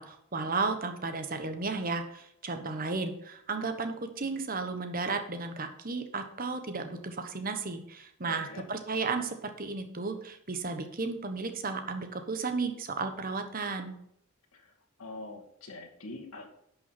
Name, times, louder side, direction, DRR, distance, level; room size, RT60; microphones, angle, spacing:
voice 1, 0.0-13.9, right 4 dB, 40° right, 8 dB, 1.2 m, -34 dB
voice 2, 8.3-8.6 14.5-14.7 15.0-16.5, left 2 dB, 85° left, 0 dB, 2.2 m, -44 dB
11.0 x 5.9 x 5.9 m, 0.74 s
head